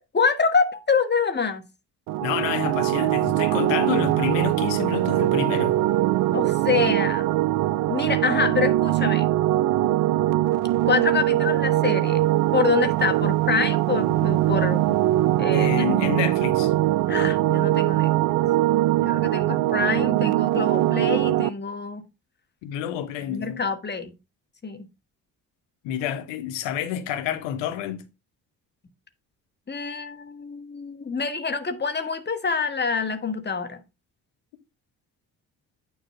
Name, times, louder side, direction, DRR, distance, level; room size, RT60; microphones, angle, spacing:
voice 1, 0.1-1.7 6.3-7.3 7.9-9.3 10.9-12.2 12.5-14.8 15.4-15.9 17.1-18.1 19.0-22.1 23.3-24.1 24.6-24.9 29.7-33.8, left 5 dB, 20° left, 1.4 m, -26 dB
sound 1, 2.1-21.5, right 15 dB, 45° right, 0.5 m, -22 dB
voice 2, 2.2-5.8 15.5-16.7 22.6-23.6 25.8-28.0, left 10 dB, 60° left, 1.2 m, -29 dB
9.1 x 3.3 x 5.6 m
figure-of-eight pair, 45°, 49 cm